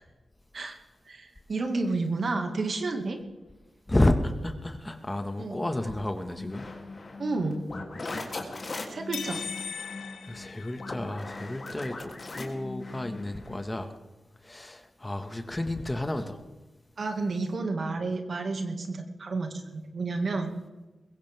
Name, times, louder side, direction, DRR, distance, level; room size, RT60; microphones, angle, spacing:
voice 1, 1.1-3.2 5.4-5.6 7.2-7.6 8.9-9.4 17.0-20.5, right 3 dB, 65° right, 4 dB, 2.2 m, -31 dB
voice 2, 3.9-6.7 9.2-9.4 10.2-14.0 14.4-16.4, left 1 dB, 20° left, 7 dB, 1.8 m, -31 dB
sound 1, 6.3-13.7, left 3 dB, 50° left, 3.2 m, -39 dB
sound 2, 9.1-11.3, left 6 dB, 80° left, 1.2 m, -38 dB
22.0 x 16.0 x 3.7 m, 1.1 s
supercardioid pair, 40°, 0 cm